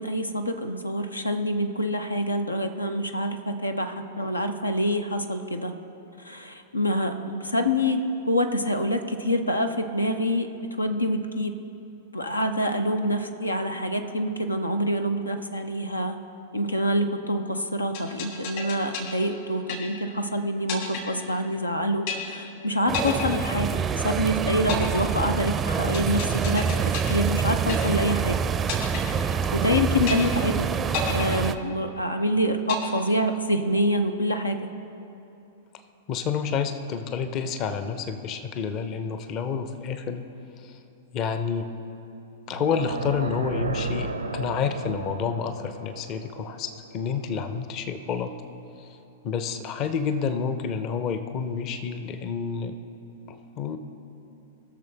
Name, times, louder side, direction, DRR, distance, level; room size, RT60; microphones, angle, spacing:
voice 1, 0.0-5.7 6.2-10.5 10.8-11.6 12.1-16.2 16.5-28.4 29.5-30.7 31.0-34.6, equal, 90° left, 7 dB, 0.7 m, -26 dB
sound 1, 17.9-20.2 20.7-21.7 22.1-22.6 22.9-24.2 24.7-28.2 28.7-29.7 30.1-30.6 30.9-32.2 32.7-33.7, left 6 dB, 55° left, 2.7 m, -33 dB
sound 2, 22.9-31.6, right 6 dB, 20° right, 0.5 m, -26 dB
voice 2, 36.1-40.2 41.1-41.7 42.5-48.3 49.2-52.7 53.3-53.8, left 6 dB, 35° left, 9 dB, 0.7 m, -29 dB
sound 3, 42.4-47.6, right 3 dB, 85° right, 0.7 m, -34 dB
20.0 x 6.7 x 3.4 m, 2.9 s
figure-of-eight pair, 100°, 0 cm